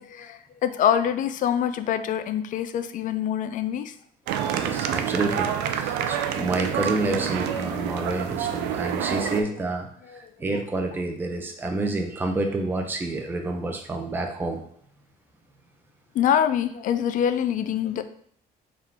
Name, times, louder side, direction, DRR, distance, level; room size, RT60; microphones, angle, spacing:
voice 1, 0.0-3.9 7.7-7.8 10.1-10.2 16.1-18.0, left 9 dB, 50° left, 11 dB, 0.4 m, -25 dB
sound 1, 4.3-9.4, right 9 dB, 90° right, 0.4 m, -27 dB
voice 2, 4.5-14.6, right 2 dB, 10° right, 3 dB, 0.5 m, -29 dB
3.6 x 2.4 x 4.3 m, 0.64 s
cardioid pair, 110°, 17 cm